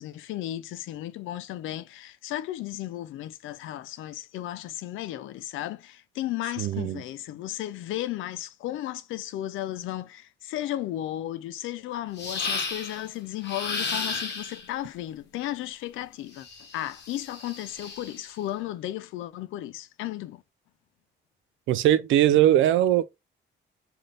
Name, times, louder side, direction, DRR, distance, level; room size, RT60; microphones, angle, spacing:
voice 1, 0.0-16.5 16.7-20.4, left 14 dB, 80° left, 0.4 m, -34 dB
voice 2, 6.6-7.0 21.7-23.0, right 12 dB, 80° right, 0.4 m, -20 dB
sound 1, 12.2-13.0 13.4-14.7 16.4-18.3, left 4 dB, 60° left, 1.0 m, -33 dB
3.3 x 2.7 x 3.7 m
cardioid pair, 90°, 20 cm